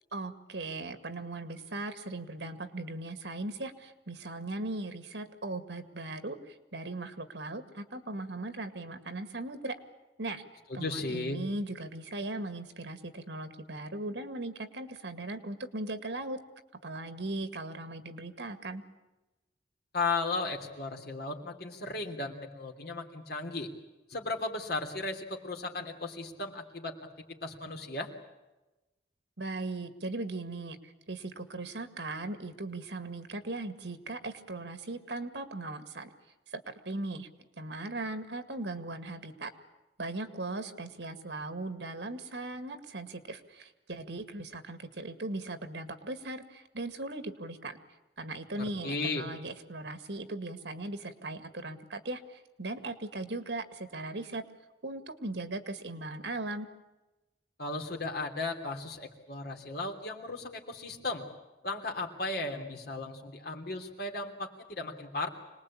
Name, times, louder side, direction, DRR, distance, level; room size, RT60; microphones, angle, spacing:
voice 1, 0.1-9.8 10.2-10.4 10.7-16.4 16.8-18.8 29.4-36.1 36.5-39.5 40.0-47.8 48.2-54.4 54.8-56.7, right 2 dB, 85° right, 9 dB, 2.1 m, -38 dB
voice 2, 10.8-11.4 19.9-23.7 24.1-26.9 27.3-28.1 48.8-49.3 57.6-61.3 61.6-65.3, left 3 dB, 60° left, 3 dB, 3.2 m, -35 dB
26.0 x 20.0 x 8.7 m, 1.0 s
head